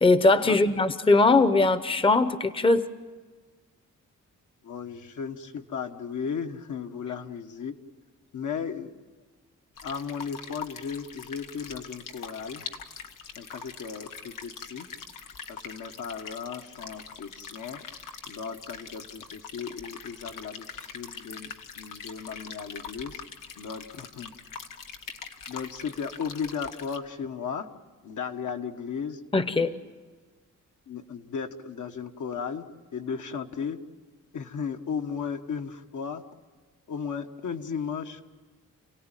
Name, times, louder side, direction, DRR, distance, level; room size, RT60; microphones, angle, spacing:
voice 1, 0.0-2.8 29.3-29.7, left 3 dB, 15° left, 12 dB, 0.8 m, -20 dB
voice 2, 4.6-7.8 8.3-8.9 9.8-12.7 13.4-14.9 15.5-17.8 18.3-23.2 23.6-24.3 25.5-27.7 28.0-29.2 30.9-32.7 32.9-33.8 34.3-36.2 36.9-38.2, left 6 dB, 70° left, 5 dB, 1.4 m, -35 dB
sound 1, 9.8-27.0, left 6 dB, 90° left, 1.6 m, -43 dB
29.5 x 17.5 x 9.0 m, 1.4 s
wide cardioid pair, 110°, 32 cm